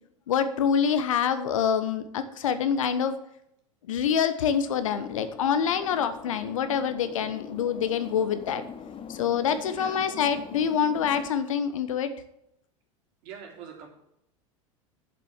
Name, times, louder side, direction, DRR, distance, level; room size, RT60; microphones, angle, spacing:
voice 1, 0.3-3.2 3.9-8.6 9.1-12.1, left 7 dB, 75° left, 10 dB, 1.1 m, -26 dB
sound 1, 4.7-11.3, left 7 dB, 30° left, 1.0 m, -43 dB
voice 2, 13.2-13.9, right 7 dB, 60° right, 0 dB, 3.4 m, -43 dB
7.7 x 7.4 x 7.3 m, 0.77 s
hypercardioid pair, 90°, 17 cm